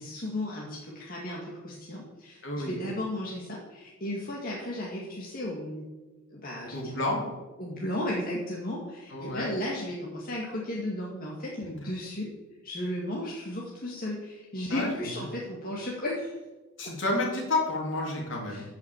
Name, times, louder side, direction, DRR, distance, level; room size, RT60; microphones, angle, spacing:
voice 1, 0.0-5.9 6.3-7.3 7.6-12.3 12.6-16.3 18.5-18.6, left 1 dB, 45° left, -4 dB, 2.2 m, -35 dB
voice 2, 2.4-2.8 6.7-7.2 9.1-9.5 11.6-11.7 14.7-15.3 16.8-18.6, left 2 dB, 60° left, 0 dB, 3.5 m, -30 dB
14.0 x 6.1 x 8.2 m, 1.2 s
head